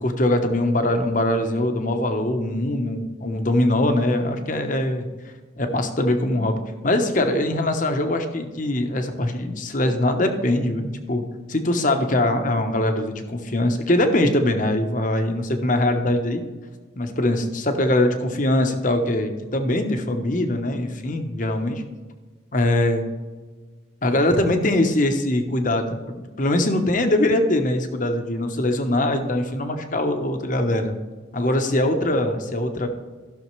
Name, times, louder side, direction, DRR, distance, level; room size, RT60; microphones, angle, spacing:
voice 1, 0.0-5.1 5.6-16.4 17.0-21.8 22.5-23.0 24.0-31.0 31.3-32.9, left 1 dB, 40° left, 6 dB, 1.0 m, -22 dB
15.5 x 6.4 x 3.2 m, 1.4 s
head